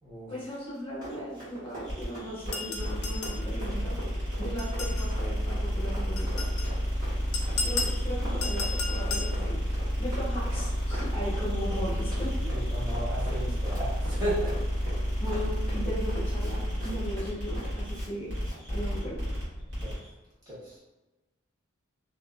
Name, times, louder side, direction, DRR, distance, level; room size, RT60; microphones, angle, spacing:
voice 1, 0.3-4.0 4.4-6.5 7.6-12.3 15.2-18.3 18.7-19.4, equal, 25° left, -7 dB, 1.0 m, -37 dB
Run, 0.7-18.1 18.4-18.6, right 1 dB, 40° right, 1.4 m, -44 dB
sound 1, 1.8-20.1, equal, 55° right, 1.3 m, -30 dB
sound 2, 2.5-3.5 4.6-5.1 6.2-6.7 7.3-8.0 8.4-9.3, left 4 dB, 90° left, 0.5 m, -34 dB
voice 2, 12.5-14.5 19.8-19.9 20.5-20.8, right 1 dB, 20° right, -10 dB, 1.1 m, -34 dB
2.7 x 2.4 x 2.2 m, 1.1 s
head